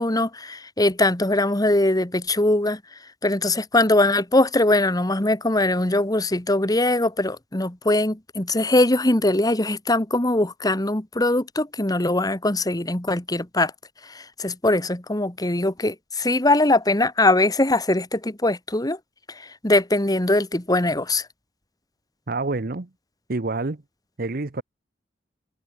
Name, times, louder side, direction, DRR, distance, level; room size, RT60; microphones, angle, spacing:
voice 1, 0.0-2.8 3.2-13.7 14.0-19.0 19.3-21.3, left 2 dB, 20° left, 1.8 m, -21 dB
voice 2, 22.3-22.9 23.3-23.8 24.2-24.6, right 3 dB, 55° right, 0.9 m, -27 dB
head